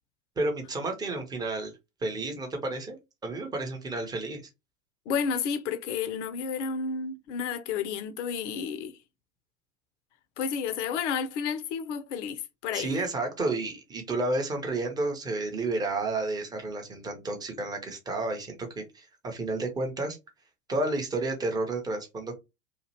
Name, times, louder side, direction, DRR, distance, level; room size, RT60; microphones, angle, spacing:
voice 1, 0.4-1.7 2.0-3.0 3.2-4.4 12.7-20.2 20.7-22.4, right 2 dB, 10° right, 0.6 m, -31 dB
voice 2, 5.1-9.0 10.4-13.0, left 6 dB, 50° left, 0.6 m, -31 dB
2.9 x 2.4 x 2.9 m
figure-of-eight pair, 95°, 46 cm